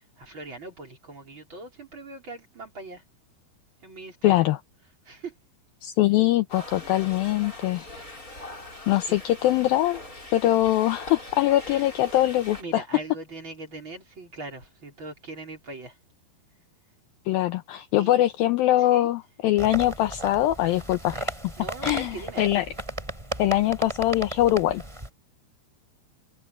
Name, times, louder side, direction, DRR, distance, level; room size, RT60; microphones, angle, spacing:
voice 1, 0.2-3.0 3.8-4.4 5.0-5.4 9.0-9.2 11.7-16.0 17.9-18.2 18.8-19.1 21.6-22.4, right 2 dB, 30° right, 5.0 m, -40 dB
voice 2, 4.2-4.6 5.8-7.8 8.9-10.0 10.3-12.8 17.3-21.3 21.8-22.7 23.4-24.8, left 14 dB, 80° left, 2.2 m, -22 dB
sound 1, 6.5-12.6, left 2 dB, 20° left, 6.6 m, -42 dB
sound 2, 19.6-25.1, right 1 dB, 5° right, 4.6 m, -35 dB
omnidirectional pair, 4.9 m